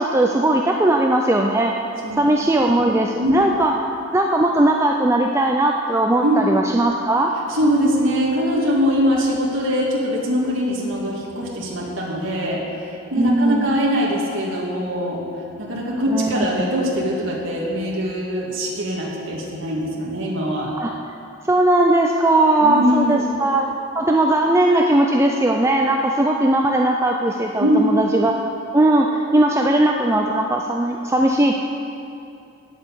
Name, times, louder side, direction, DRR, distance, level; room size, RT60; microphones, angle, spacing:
voice 1, 0.0-1.8 2.1-3.7 4.1-7.3 13.2-13.7 16.1-16.5 20.8-21.0 21.5-23.7 23.9-28.4 28.7-31.5, right 1 dB, 10° right, 1 dB, 0.4 m, -18 dB
voice 2, 7.5-15.2 15.6-20.7 22.6-23.3 27.6-27.8, equal, 60° right, -4 dB, 2.0 m, -22 dB
9.0 x 7.4 x 8.2 m, 2.7 s
head